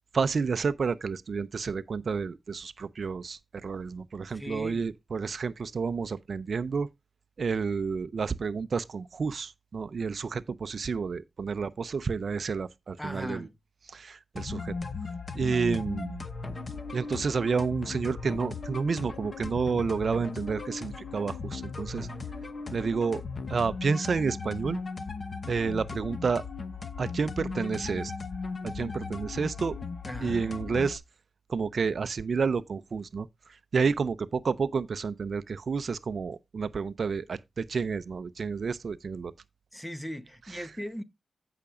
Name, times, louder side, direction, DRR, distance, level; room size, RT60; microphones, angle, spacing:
voice 1, 0.1-6.9 7.4-13.5 13.9-14.7 15.3-16.3 16.9-22.1 22.7-23.2 23.5-24.8 25.5-26.4 27.0-28.1 28.6-29.7 30.2-31.0 31.5-39.3, right 5 dB, 55° right, 0.5 m, -30 dB
voice 2, 4.3-4.9 13.0-13.5 30.0-30.6 39.7-41.0, equal, 5° left, 0.8 m, -38 dB
sound 1, 14.4-31.0, left 4 dB, 40° left, 0.9 m, -37 dB
15.5 x 5.8 x 2.4 m
wide cardioid pair, 150°, 0 cm